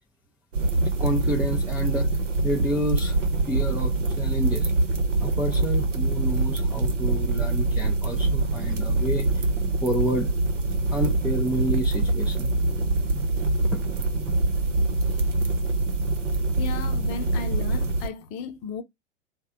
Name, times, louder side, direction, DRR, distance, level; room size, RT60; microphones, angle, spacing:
sound 1, 0.5-18.1, right 2 dB, 80° right, 0.9 m, -24 dB
voice 1, 1.0-2.1 2.4-3.2 3.5-4.7 5.2-9.4 9.8-10.3 10.9-12.5, right 1 dB, 5° right, 0.4 m, -29 dB
voice 2, 16.6-18.8, left 6 dB, 40° left, 0.8 m, -35 dB
3.3 x 2.2 x 3.6 m
figure-of-eight pair, 100°, 37 cm